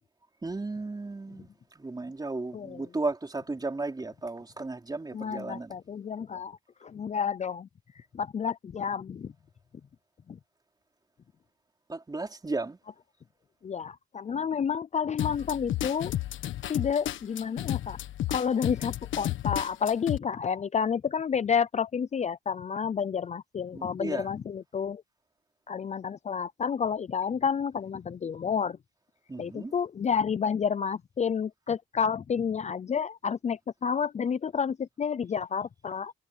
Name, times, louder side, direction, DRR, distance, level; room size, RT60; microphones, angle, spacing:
voice 1, 0.4-1.5 1.7-5.7 11.9-12.8 23.7-24.3 29.3-29.7, right 3 dB, 20° right, 4.3 m, -34 dB
voice 2, 5.1-7.7 8.2-9.3 13.6-16.1 16.7-18.0 18.3-25.0 25.7-28.8 29.4-36.1, left 7 dB, 35° left, 0.6 m, -30 dB
sound 1, 15.2-20.2, left 13 dB, 75° left, 1.3 m, -32 dB
cardioid pair, 90°, 20 cm